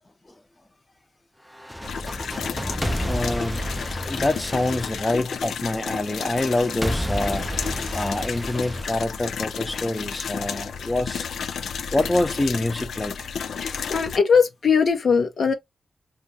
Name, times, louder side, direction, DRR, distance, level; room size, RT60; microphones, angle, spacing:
sound 1, 1.5-5.7 6.8-9.7, equal, ahead, 0.4 m, -30 dB
sound 2, 1.8-14.2, left 6 dB, 85° left, 0.3 m, -32 dB
voice 1, 3.0-7.5 7.9-11.3 11.9-13.3, left 2 dB, 25° left, 0.8 m, -26 dB
voice 2, 13.6-15.5, left 6 dB, 70° left, 0.8 m, -20 dB
4.3 x 2.4 x 2.7 m
cardioid pair, 50°, 0 cm